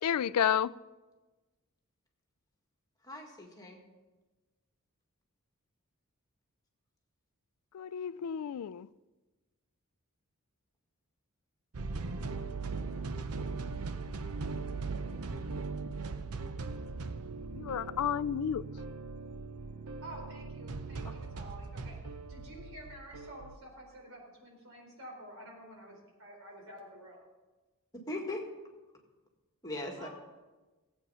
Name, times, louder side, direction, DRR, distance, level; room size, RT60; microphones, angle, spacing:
voice 1, 0.0-0.7 7.7-8.9 17.5-18.6, left 8 dB, 85° left, 0.4 m, -31 dB
voice 2, 3.0-3.8 28.1-28.4 29.6-30.1, left 2 dB, 15° left, 1.9 m, -39 dB
sound 1, 11.7-23.6, right 4 dB, 80° right, 0.7 m, -39 dB
voice 3, 20.0-27.2 30.0-30.1, right 1 dB, 65° right, 4.2 m, -50 dB
16.5 x 8.5 x 5.6 m
head